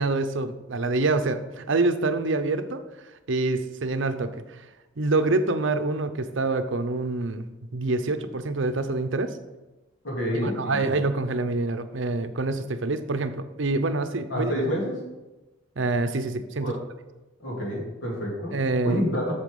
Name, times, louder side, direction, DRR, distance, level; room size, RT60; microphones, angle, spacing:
voice 1, 0.0-2.8 3.3-4.7 5.0-7.4 7.7-9.4 10.4-14.5 15.8-16.7 18.5-19.2, right 3 dB, 65° right, 9 dB, 0.7 m, -26 dB
voice 2, 10.0-11.0 14.3-15.0 16.6-16.8 17.4-18.5 18.8-19.3, equal, 70° left, -3 dB, 3.1 m, -28 dB
8.2 x 7.0 x 5.4 m, 1.1 s
head